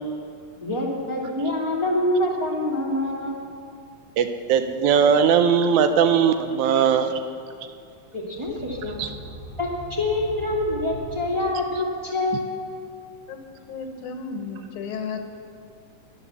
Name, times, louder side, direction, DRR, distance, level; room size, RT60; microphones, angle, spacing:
voice 1, 0.6-3.3 8.1-9.0 9.6-12.5, left 1 dB, 10° right, -4 dB, 1.4 m, -26 dB
voice 2, 4.2-7.1 9.0-9.1, right 7 dB, 75° right, 8 dB, 2.0 m, -19 dB
sound 1, 8.3-12.0, left 1 dB, 60° right, 6.1 m, -40 dB
voice 3, 13.7-15.2, left 5 dB, 75° left, 6 dB, 2.5 m, -33 dB
21.0 x 7.2 x 6.9 m, 2.4 s
omnidirectional pair, 3.5 m